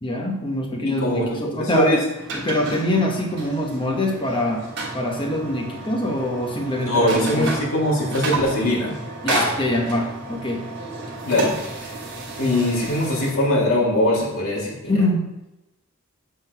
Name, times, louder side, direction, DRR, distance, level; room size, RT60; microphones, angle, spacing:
voice 1, 0.0-2.0 2.3-4.7 4.9-7.6 9.2-10.7 14.9-15.3, left 1 dB, 25° left, 0 dB, 0.9 m, -24 dB
voice 2, 1.0-2.0 6.7-9.0 11.3-12.0 12.4-15.0, left 1 dB, 75° left, -4 dB, 1.8 m, -22 dB
sound 1, 2.1-13.3, right 2 dB, 55° right, 1.5 m, -31 dB
7.4 x 4.0 x 4.5 m, 0.93 s
head